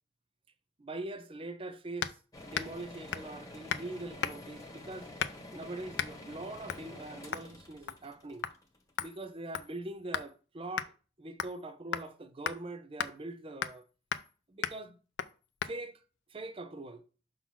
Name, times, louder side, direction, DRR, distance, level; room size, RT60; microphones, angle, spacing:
voice 1, 0.8-2.2 2.4-5.1 5.5-8.5 9.0-10.9 11.2-13.8 14.5-15.0 15.6-16.0 16.3-17.0, right 2 dB, 30° right, 0.6 m, -42 dB
sound 1, 2.0-2.2 2.5-2.8 3.1-3.3 3.7-3.9 4.2-4.6 5.2-5.5 6.0-6.1 6.7-6.9 7.3-7.5 7.9-8.1 8.4-8.6 9.0-10.3 10.8-10.9 11.4-11.6 11.9-12.1 12.4-12.6 13.0-13.1 13.6-13.8 14.1-14.3 14.6-14.8 15.2-15.3 15.6-15.7, left 8 dB, 75° left, 0.5 m, -36 dB
sound 2, 2.3-9.2, left 1 dB, 20° left, 1.3 m, -49 dB
5.9 x 3.9 x 5.9 m
head